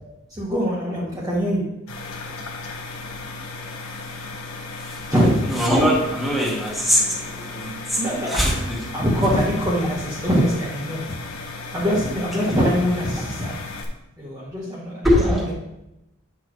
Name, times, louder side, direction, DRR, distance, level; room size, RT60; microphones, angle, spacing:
voice 1, 0.3-1.8 5.1-5.7 8.0-11.2 11.7-13.8 14.2-15.5, equal, 15° right, -6 dB, 1.4 m, -23 dB
sound 1, 1.9-13.8, left 3 dB, 75° left, 1.3 m, -35 dB
voice 2, 5.5-8.0 8.3-8.8 15.0-15.4, equal, ahead, -4 dB, 1.9 m, -21 dB
9.6 x 6.1 x 3.2 m, 0.89 s
head